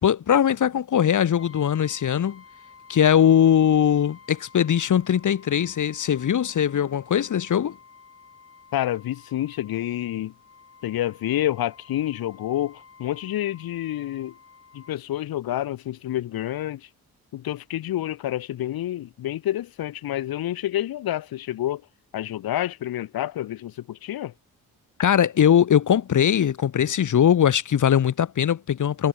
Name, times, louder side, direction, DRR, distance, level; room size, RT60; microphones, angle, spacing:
voice 1, 0.0-2.4 2.9-7.8 25.0-29.1, left 9 dB, 55° left, 2.0 m, -20 dB
Brass instrument, 1.4-15.0, left 5 dB, 40° left, 7.6 m, -51 dB
voice 2, 8.7-10.3 10.8-14.3 14.7-16.8 17.3-21.8 22.1-24.3, left 13 dB, 85° left, 2.5 m, -28 dB
cardioid pair, 85°, 35 cm